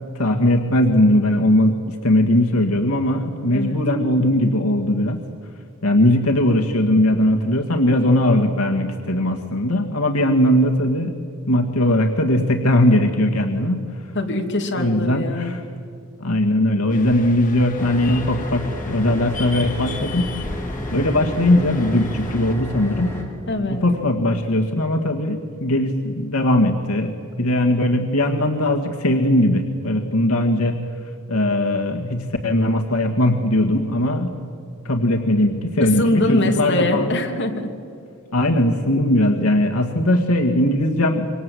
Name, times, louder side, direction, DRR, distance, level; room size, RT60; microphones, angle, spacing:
voice 1, 0.2-5.2 5.8-11.1 11.5-13.9 14.7-15.6 16.2-20.3 20.9-23.2 23.7-27.1 27.4-30.8 31.3-34.3 34.9-37.2 38.3-41.3, left 1 dB, 85° left, 3 dB, 1.9 m, -19 dB
voice 2, 14.1-15.6 23.5-23.8 35.8-37.7, left 1 dB, 55° left, 2 dB, 2.8 m, -23 dB
sound 1, 16.9-22.6, left 2 dB, 40° left, 1.9 m, -36 dB
sound 2, 17.8-23.2, equal, 10° left, 4.1 m, -32 dB
27.0 x 24.0 x 7.9 m, 2.4 s
head